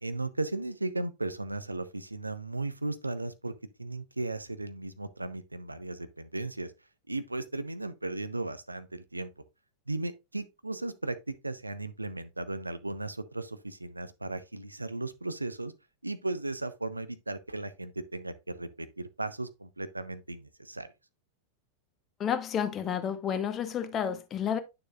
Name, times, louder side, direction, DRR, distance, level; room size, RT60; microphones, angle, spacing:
voice 1, 0.0-3.5 3.8-6.7 7.1-9.3 9.9-15.7 16.0-20.9, right 2 dB, 85° right, 0.7 m, -36 dB
voice 2, 22.2-24.6, left 8 dB, 30° left, 1.0 m, -30 dB
9.0 x 6.7 x 2.4 m
figure-of-eight pair, 90°, 0 cm